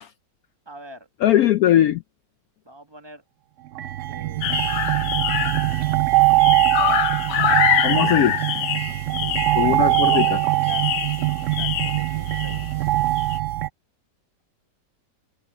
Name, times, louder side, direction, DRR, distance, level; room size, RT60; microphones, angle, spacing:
voice 1, 0.6-1.1 2.6-3.2 4.1-4.8 5.8-7.1 9.2-12.8, right 1 dB, 15° right, 1.2 m, -45 dB
voice 2, 1.2-2.0 7.8-8.4 9.6-10.4, left 12 dB, 70° left, 0.9 m, -19 dB
sound 1, 3.8-13.7, right 17 dB, 70° right, 0.7 m, -22 dB
sound 2, 4.4-5.9 6.2-12.7 13.2-13.4, left 13 dB, 90° left, 1.4 m, -25 dB
sound 3, 8.5-9.2 10.0-10.1 11.6-11.7, right 2 dB, 90° right, 7.3 m, -53 dB
omnidirectional pair, 1.8 m